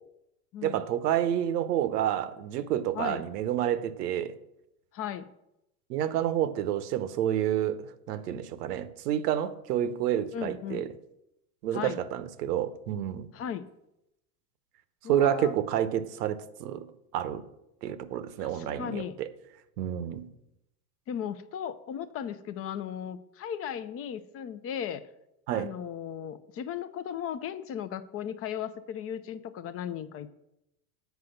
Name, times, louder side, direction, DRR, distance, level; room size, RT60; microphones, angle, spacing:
voice 1, 0.6-4.3 5.9-10.9 11.6-13.3 15.1-17.5 17.8-19.3 19.8-20.3 25.5-25.7, right 11 dB, 90° right, 0.8 m, -29 dB
voice 2, 2.9-3.3 4.9-5.3 10.3-10.8 11.7-12.0 13.3-13.7 15.0-15.6 18.4-19.2 21.1-25.0 25.5-30.3, left 9 dB, 30° left, 0.4 m, -36 dB
8.3 x 4.8 x 6.5 m
supercardioid pair, 110°, 46 cm